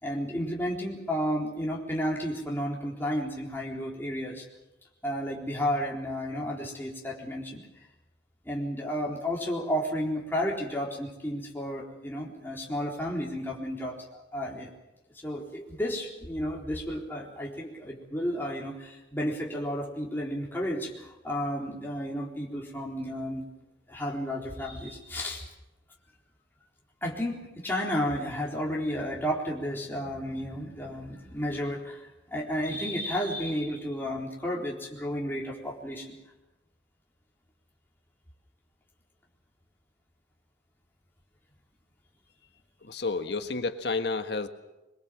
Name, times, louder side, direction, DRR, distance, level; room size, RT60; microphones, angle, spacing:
voice 1, 0.0-4.5 5.0-7.6 8.4-14.0 14.3-14.7 15.2-23.5 23.9-25.4 27.0-36.1, equal, 10° left, -3 dB, 3.9 m, -32 dB
voice 2, 42.9-44.5, left 3 dB, 65° left, 7 dB, 1.5 m, -30 dB
23.0 x 22.5 x 7.5 m, 0.99 s
head